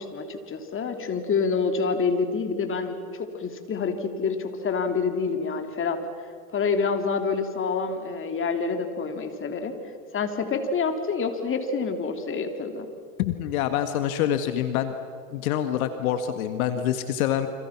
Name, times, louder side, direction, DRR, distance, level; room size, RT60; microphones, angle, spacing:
voice 1, 0.0-6.0 6.5-9.7 10.1-12.9, left 5 dB, 25° left, 5 dB, 3.4 m, -27 dB
voice 2, 13.2-14.9 15.3-17.5, left 10 dB, 65° left, 8 dB, 2.0 m, -26 dB
29.5 x 26.0 x 6.1 m, 2.2 s
hypercardioid pair, 105°, 45 cm